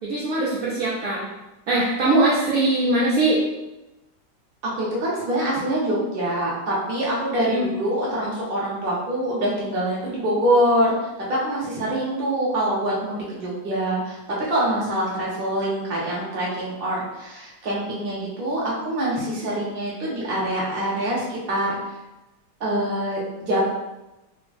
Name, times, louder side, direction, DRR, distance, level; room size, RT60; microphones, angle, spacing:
voice 1, 0.0-1.3 1.7-3.4 7.5-7.7, right 2 dB, 60° right, -6 dB, 1.0 m, -21 dB
voice 2, 4.6-10.9 11.3-14.2 14.5-21.7 22.6-23.6, right 1 dB, 35° right, -5 dB, 1.1 m, -24 dB
3.4 x 3.0 x 3.4 m, 0.98 s
omnidirectional pair, 2.1 m